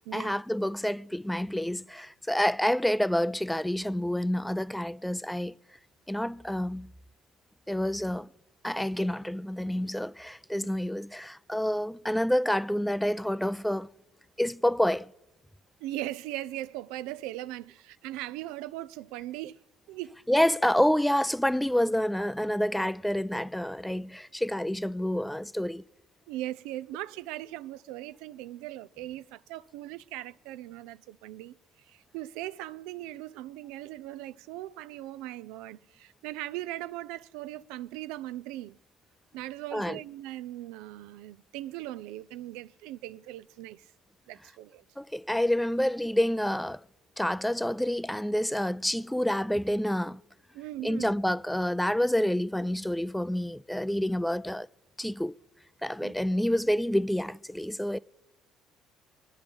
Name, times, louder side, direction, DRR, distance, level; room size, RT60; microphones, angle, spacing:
voice 1, 0.1-5.5 6.1-6.9 7.7-8.3 8.6-13.9 14.4-15.1 20.3-25.8 39.7-40.0 45.0-46.8 47.2-50.2 50.8-54.7 55.0-55.3 55.8-58.0, left 1 dB, 5° left, 0.4 m, -28 dB
voice 2, 15.8-19.6 19.9-20.1 26.3-31.6 31.9-38.8 39.3-43.9 44.3-44.8 50.5-51.1 56.0-56.1, right 15 dB, 85° right, 0.4 m, -39 dB
25.5 x 10.0 x 3.5 m
supercardioid pair, 75°, 0 cm